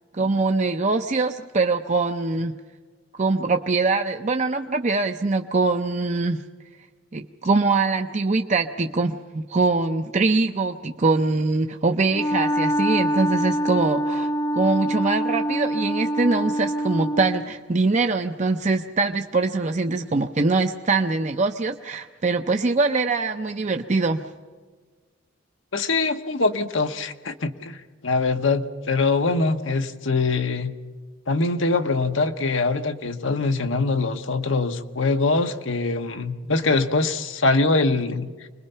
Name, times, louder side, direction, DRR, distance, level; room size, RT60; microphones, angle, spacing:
voice 1, 0.1-2.6 3.2-6.4 7.1-24.3, right 3 dB, 40° right, 6 dB, 0.6 m, -23 dB
Wind instrument woodwind instrument, 12.1-17.5, equal, 20° left, 0.6 m, -25 dB
voice 2, 25.7-27.8 28.0-30.7 31.3-38.5, left 3 dB, 80° left, 7 dB, 1.2 m, -23 dB
26.0 x 21.0 x 5.6 m, 1.4 s
head